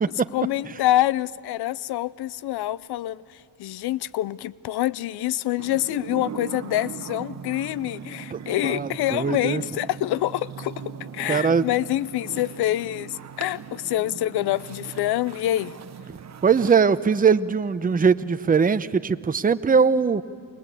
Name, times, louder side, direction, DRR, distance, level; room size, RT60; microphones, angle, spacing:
voice 1, 0.3-3.2 3.6-10.7 11.1-15.7, left 14 dB, 70° left, 0.7 m, -26 dB
sound 1, 5.6-16.7, right 7 dB, 40° right, 1.3 m, -39 dB
voice 2, 8.3-9.6 11.3-11.7 16.4-20.2, right 5 dB, 20° right, 0.8 m, -21 dB
29.0 x 21.5 x 8.4 m
supercardioid pair, 75°, 40 cm